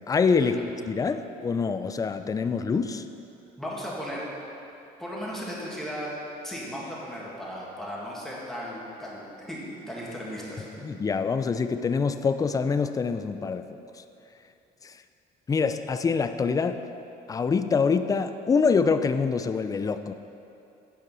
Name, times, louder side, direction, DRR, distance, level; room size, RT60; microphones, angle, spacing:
voice 1, 0.1-0.6 0.9-3.0 10.8-13.7 14.8-15.0 15.5-16.8 17.3-20.1, left 5 dB, 20° left, 9 dB, 0.4 m, -25 dB
voice 2, 3.6-4.2 5.0-6.1 6.4-10.8, equal, ahead, -6 dB, 1.9 m, -36 dB
8.9 x 5.4 x 5.4 m, 2.7 s
cardioid pair, 110°, 17 cm